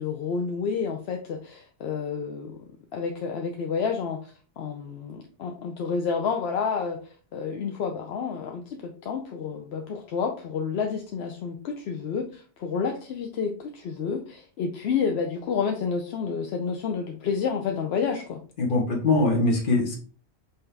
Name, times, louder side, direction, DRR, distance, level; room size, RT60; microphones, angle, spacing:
voice 1, 0.0-2.6 2.9-18.4, left 6 dB, 70° left, 2 dB, 0.8 m, -30 dB
voice 2, 18.6-20.0, left 2 dB, 50° left, 0 dB, 1.3 m, -22 dB
5.6 x 2.8 x 3.3 m, 0.40 s
omnidirectional pair, 1.1 m